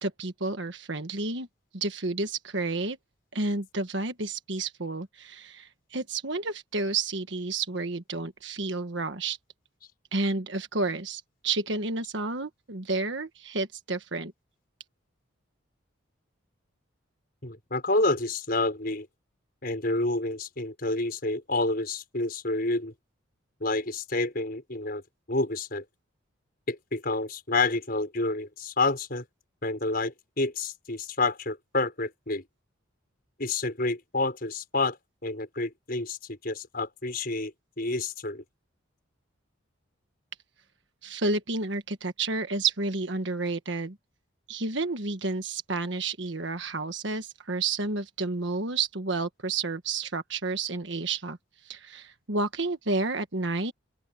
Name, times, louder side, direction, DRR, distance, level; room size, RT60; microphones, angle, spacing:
voice 1, 0.0-1.5 1.7-3.0 3.3-9.4 10.1-14.3 41.0-44.0 44.5-51.4 51.6-53.7, right 3 dB, 60° right, 1.5 m, -30 dB
voice 2, 17.4-19.1 19.6-22.9 23.6-25.0 25.3-25.8 26.7-29.2 29.6-32.4 33.4-38.4, left 2 dB, 45° left, 5.9 m, -29 dB
open air
head